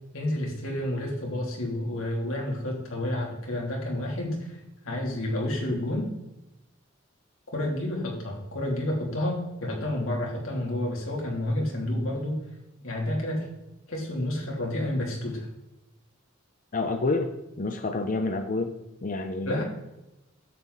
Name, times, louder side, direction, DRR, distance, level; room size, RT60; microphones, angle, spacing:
voice 1, 0.1-4.6 4.8-6.1 7.5-12.4 12.8-13.5 13.9-15.5 19.4-19.6, left 1 dB, 90° left, -2 dB, 3.1 m, -30 dB
voice 2, 16.7-17.3 17.6-18.7 19.0-19.5, left 3 dB, 40° left, 7 dB, 0.6 m, -28 dB
11.0 x 8.0 x 4.1 m, 0.94 s
head